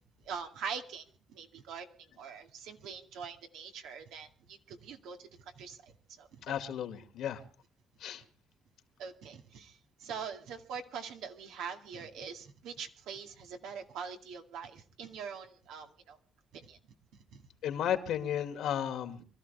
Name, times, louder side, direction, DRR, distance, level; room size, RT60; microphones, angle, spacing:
voice 1, 0.2-6.4 9.0-16.2 16.5-16.8 17.3-17.4, right 6 dB, 90° right, 2.2 m, -43 dB
voice 2, 6.5-7.4 8.0-8.2 17.6-19.2, left 10 dB, 80° left, 2.2 m, -33 dB
25.5 x 13.5 x 3.4 m
cardioid pair, 90°, 0 cm